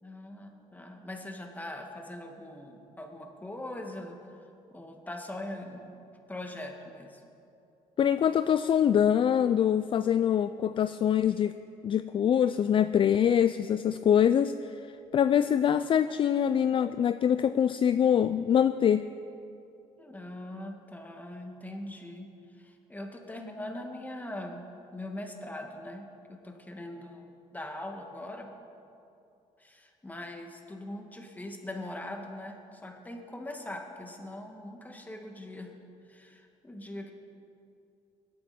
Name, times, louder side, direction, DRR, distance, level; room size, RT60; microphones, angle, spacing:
voice 1, 0.0-4.4 4.7-6.0 6.3-7.2 20.0-22.3 22.6-28.5 29.6-35.7 36.1-37.1, left 1 dB, 15° left, 2 dB, 1.9 m, -41 dB
voice 2, 8.0-11.5 11.8-14.7 15.1-19.0, left 9 dB, 40° left, 12 dB, 0.4 m, -24 dB
21.0 x 8.8 x 4.4 m, 2.7 s
supercardioid pair, 80°, 13 cm